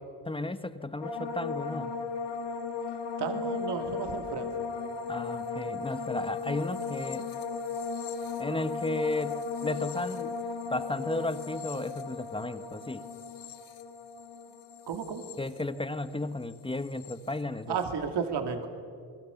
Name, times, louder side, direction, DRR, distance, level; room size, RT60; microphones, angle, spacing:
voice 1, 0.2-1.9 5.1-7.2 8.4-10.4 10.7-13.0 15.4-17.8, left 2 dB, 10° left, 12 dB, 0.9 m, -34 dB
sound 1, 1.0-16.2 16.5-17.1, left 5 dB, 70° left, 2.3 m, -36 dB
voice 2, 3.2-4.7 14.9-15.2 17.7-18.7, right 6 dB, 65° right, 6 dB, 2.6 m, -33 dB
27.5 x 21.5 x 7.1 m, 2.3 s
cardioid pair, 125°, 44 cm